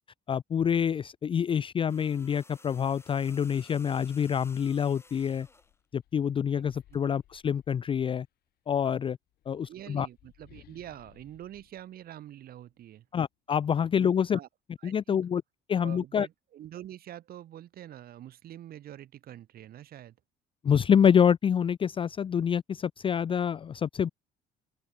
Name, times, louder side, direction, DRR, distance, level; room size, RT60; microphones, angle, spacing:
voice 1, 0.3-5.5 5.9-8.3 8.7-9.2 9.5-10.1 13.1-14.4 14.8-15.4 15.7-16.3 20.6-24.1, left 8 dB, 30° left, 0.5 m, -26 dB
sound 1, 1.9-5.7 6.9-7.1, left 3 dB, 15° left, 2.9 m, -55 dB
sound 2, 5.1-8.3 9.2-12.9, left 14 dB, 70° left, 3.0 m, -61 dB
voice 2, 9.6-13.1 14.0-14.5 14.8-15.2 15.8-20.2, right 12 dB, 60° right, 4.4 m, -45 dB
open air
cardioid pair, 110°, 17 cm